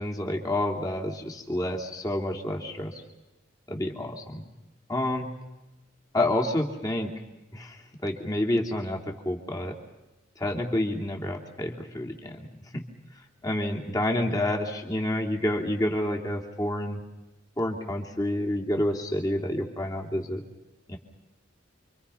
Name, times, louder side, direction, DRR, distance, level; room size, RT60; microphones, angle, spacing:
voice 1, 0.0-3.0 3.7-4.4 4.9-5.3 6.1-7.1 7.5-7.8 8.0-9.0 9.2-9.7 10.4-12.4 13.4-17.0 17.6-20.4 20.9-21.0, left 1 dB, 20° left, 0 dB, 3.0 m, -28 dB
29.0 x 25.0 x 5.7 m, 1.0 s
head